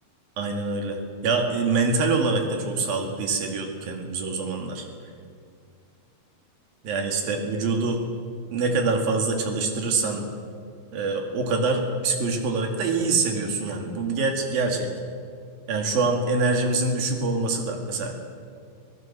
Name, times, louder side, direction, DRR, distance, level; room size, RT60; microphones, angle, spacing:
voice 1, 0.4-4.9 6.8-8.0 8.5-10.3 10.9-14.9 15.7-18.1, right 3 dB, 80° right, 3 dB, 4.2 m, -25 dB
25.5 x 18.0 x 7.4 m, 2.3 s
omnidirectional pair, 4.1 m